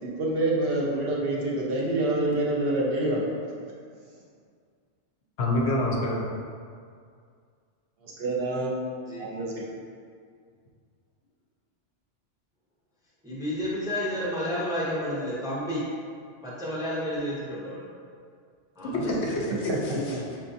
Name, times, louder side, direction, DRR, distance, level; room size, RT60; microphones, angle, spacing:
voice 1, 0.0-3.2 8.0-8.8 9.2-9.6 19.1-19.2 19.7-20.4, right 2 dB, 60° right, -4 dB, 0.7 m, -27 dB
voice 2, 5.4-6.2 18.9-20.2, left 1 dB, 65° left, -2 dB, 0.8 m, -27 dB
voice 3, 13.2-15.8 16.4-17.8 18.8-19.1, equal, 5° right, -7 dB, 0.4 m, -31 dB
5.7 x 2.3 x 2.6 m, 2.2 s
omnidirectional pair, 1.3 m